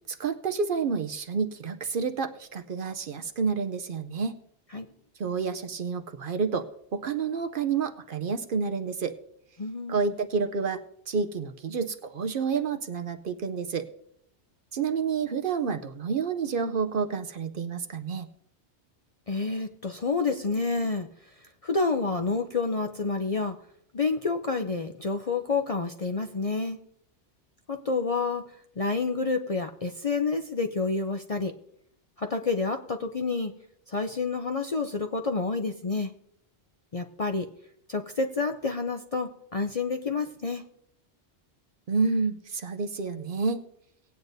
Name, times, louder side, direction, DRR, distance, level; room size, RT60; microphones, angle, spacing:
voice 1, 0.1-4.4 5.2-9.2 9.9-13.9 14.7-18.3 41.9-43.6, right 5 dB, 55° right, 8 dB, 0.7 m, -29 dB
voice 2, 9.6-10.1 19.3-21.1 21.6-23.6 23.9-26.8 27.7-28.4 28.8-31.5 32.2-33.5 33.9-36.1 36.9-37.5 37.9-40.6, left 4 dB, 45° left, 6 dB, 0.5 m, -29 dB
19.0 x 8.9 x 2.6 m, 0.73 s
omnidirectional pair, 1.2 m